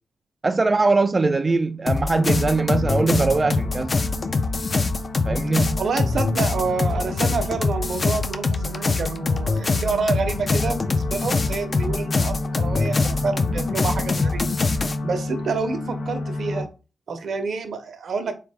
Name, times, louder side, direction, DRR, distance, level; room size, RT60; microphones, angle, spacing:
voice 1, 0.4-4.0 5.2-5.8, right 3 dB, 35° right, 0.3 m, -21 dB
sound 1, 1.9-14.9, left 3 dB, 45° left, 0.5 m, -24 dB
sound 2, 2.1-16.6, left 2 dB, 90° left, 0.9 m, -32 dB
voice 2, 5.8-14.6 15.0-16.7 17.1-18.3, right 4 dB, 65° right, 0.8 m, -28 dB
3.8 x 3.2 x 3.5 m
cardioid pair, 60°, 0 cm